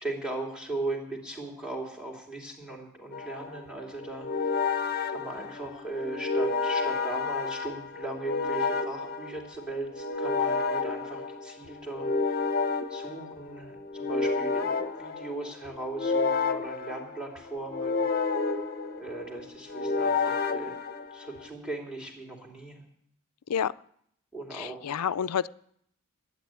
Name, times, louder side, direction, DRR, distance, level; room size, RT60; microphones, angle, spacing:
voice 1, 0.0-4.7 5.1-12.4 12.9-18.0 19.0-20.7 21.1-22.8 24.3-25.0, right 2 dB, 5° right, 0 dB, 3.1 m, -38 dB
sound 1, 3.1-21.5, left 4 dB, 45° left, 0.9 m, -30 dB
voice 2, 24.5-25.5, left 8 dB, 85° left, 16 dB, 0.4 m, -29 dB
11.5 x 9.2 x 9.1 m, 0.70 s
head